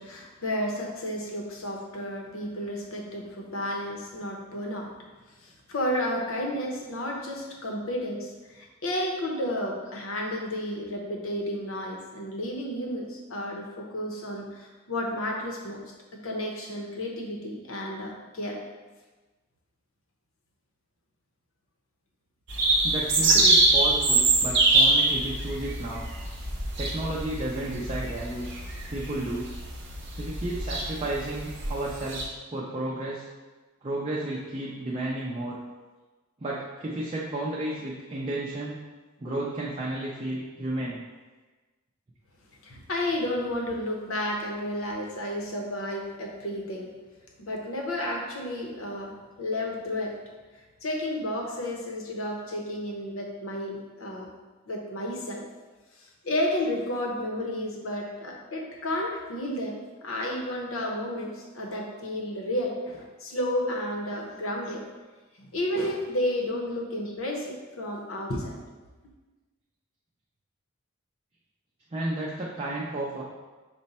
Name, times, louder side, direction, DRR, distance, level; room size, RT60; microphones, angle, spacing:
voice 1, 0.0-4.9 5.4-15.9 16.2-18.6 23.3-23.4 42.6-46.9 47.4-49.1 49.4-50.1 50.8-54.3 54.7-55.4 56.2-64.8 65.4-68.6, left 1 dB, 80° left, -1 dB, 0.8 m, -32 dB
sound 1, 22.5-32.2, right 2 dB, 60° right, 0.7 m, -24 dB
voice 2, 22.8-26.1 26.8-28.6 28.9-29.5 30.2-33.3 33.8-35.6 36.4-38.8 39.2-41.0 71.9-73.2, right 1 dB, 25° right, -5 dB, 0.5 m, -32 dB
5.2 x 2.1 x 4.1 m, 1.3 s
head